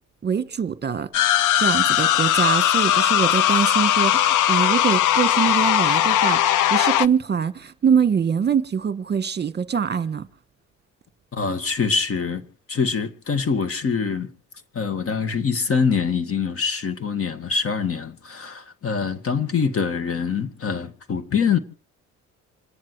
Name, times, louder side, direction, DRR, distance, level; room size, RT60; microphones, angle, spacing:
voice 1, 0.2-1.1 1.5-6.4 6.7-10.3, right 7 dB, 35° right, 1.3 m, -23 dB
sound 1, 1.1-7.1, left 12 dB, 80° left, 0.7 m, -19 dB
voice 2, 11.3-12.4 12.7-14.3 14.7-21.6, left 5 dB, 50° left, 1.9 m, -24 dB
27.5 x 10.5 x 4.7 m
cardioid pair, 90°, 30 cm